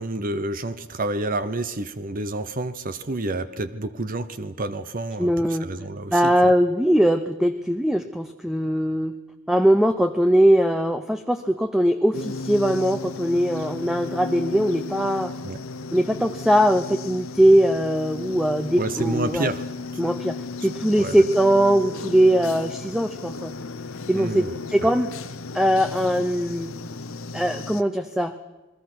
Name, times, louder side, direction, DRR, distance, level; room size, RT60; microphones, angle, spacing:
voice 1, 0.0-6.5 15.4-15.6 18.7-19.7 21.0-21.2 24.1-24.5, right 2 dB, 40° right, 12 dB, 0.8 m, -29 dB
voice 2, 5.2-5.7 6.1-9.2 9.5-15.3 15.9-19.5 20.0-23.5 24.1-25.1 25.5-26.7 27.3-28.3, equal, ahead, 8 dB, 0.7 m, -21 dB
sound 1, 12.1-27.8, left 3 dB, 75° left, 1.0 m, -35 dB
28.5 x 21.0 x 6.1 m, 1.1 s
head